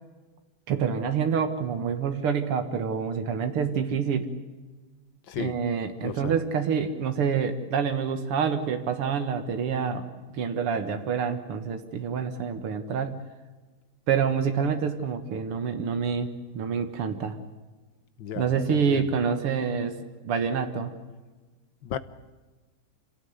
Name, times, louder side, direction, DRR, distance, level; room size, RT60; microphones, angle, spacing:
voice 1, 0.7-4.3 5.4-13.2 14.1-17.4 18.4-20.0 20.2-20.9, right 6 dB, 90° right, 8 dB, 2.4 m, -27 dB
voice 2, 5.3-5.6 6.0-6.4 18.2-19.1 21.8-22.0, left 9 dB, 65° left, 14 dB, 1.8 m, -35 dB
27.0 x 17.5 x 9.6 m, 1.3 s
omnidirectional pair, 2.4 m